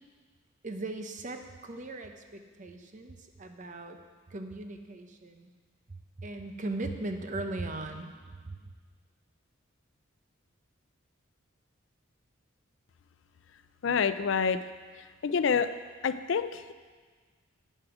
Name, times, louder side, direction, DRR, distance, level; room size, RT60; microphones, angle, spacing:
voice 1, 0.6-4.0 4.3-5.5 5.9-8.7, right 2 dB, 40° right, 6 dB, 0.7 m, -39 dB
voice 2, 13.8-14.6 15.2-15.7 16.0-16.7, left 6 dB, 65° left, 12 dB, 0.4 m, -27 dB
11.0 x 7.7 x 4.9 m, 1.5 s
head